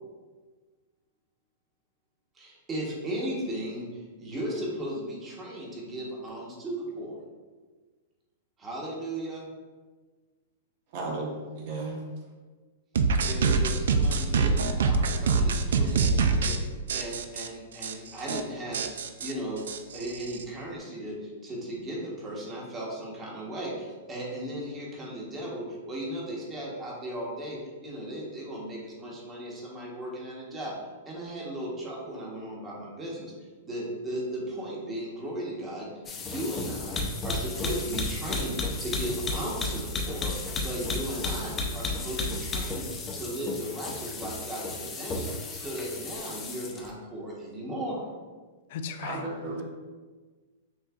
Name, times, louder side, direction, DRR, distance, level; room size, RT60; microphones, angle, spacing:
voice 1, 2.3-7.2 8.6-9.5 13.2-16.5 16.9-18.9 19.2-19.6 19.9-30.8 31.0-33.3 33.6-35.9 36.2-38.5 38.8-42.9 43.1-48.0, right 1 dB, 25° right, -4 dB, 1.1 m, -36 dB
voice 2, 10.9-12.0 49.0-49.6, right 2 dB, 55° right, -1 dB, 1.1 m, -34 dB
sound 1, 13.0-16.6 16.9-17.5 17.8-17.9 18.2-18.4 18.7-20.4, right 4 dB, 75° right, 0.3 m, -25 dB
sound 2, 36.1-46.9, left 2 dB, 20° left, 0.6 m, -33 dB
voice 3, 48.7-49.6, left 6 dB, 60° left, 8 dB, 0.4 m, -38 dB
6.3 x 2.5 x 2.4 m, 1.4 s
hypercardioid pair, 120°, 0 cm